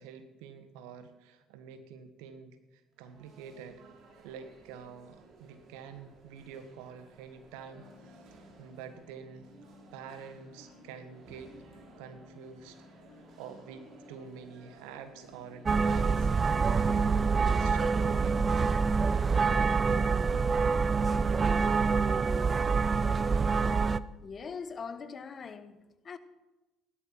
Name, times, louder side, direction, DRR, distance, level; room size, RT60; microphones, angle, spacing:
voice 1, 0.0-3.8 4.2-9.5 9.9-11.6 12.0-12.9 13.4-16.3 16.6-18.5 19.4-20.2, right 7 dB, 75° right, 1.5 m, -47 dB
sound 1, 2.9-16.6, right 3 dB, 55° right, 3.4 m, -57 dB
sound 2, 7.7-19.4, left 5 dB, 65° left, 3.4 m, -57 dB
sound 3, 15.7-24.0, right 5 dB, 35° right, 0.6 m, -26 dB
voice 2, 24.2-26.2, left 5 dB, 40° left, 1.3 m, -42 dB
16.5 x 12.0 x 5.8 m
hypercardioid pair, 60°, 0 cm